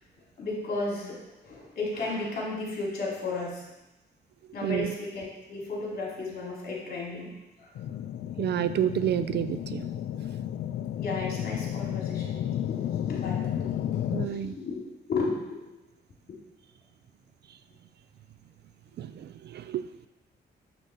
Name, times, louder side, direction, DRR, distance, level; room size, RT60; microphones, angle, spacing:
voice 1, 0.4-1.2 1.4-3.6 4.5-7.3 7.6-7.7 10.9-14.8 15.1-15.7 16.3-16.4, left 3 dB, 55° left, -4 dB, 3.8 m, -34 dB
voice 2, 4.6-4.9 8.4-9.9 14.1-14.5 19.0-19.9, right 10 dB, 65° right, 12 dB, 0.5 m, -29 dB
sound 1, 7.7-14.3, left 10 dB, 75° left, 0.5 m, -32 dB
12.0 x 4.0 x 6.8 m, 0.99 s
wide cardioid pair, 175°, 19 cm